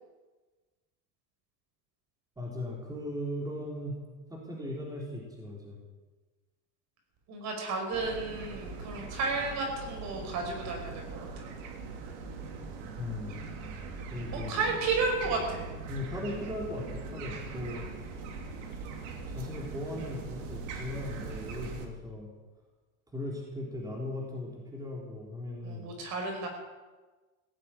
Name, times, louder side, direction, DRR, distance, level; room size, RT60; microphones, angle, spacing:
voice 1, 2.4-3.9 4.3-5.8 13.0-13.4 14.1-14.7 15.9-18.1 18.7-22.3 23.1-25.8, left 1 dB, 10° right, -2 dB, 3.7 m, -38 dB
voice 2, 7.3-11.5 14.5-15.7 25.6-26.5, right 3 dB, 50° right, 2 dB, 5.3 m, -32 dB
sound 1, 7.9-21.9, right 4 dB, 80° right, 2.8 m, -41 dB
17.0 x 9.0 x 9.1 m, 1.3 s
cardioid pair, 140°, 35 cm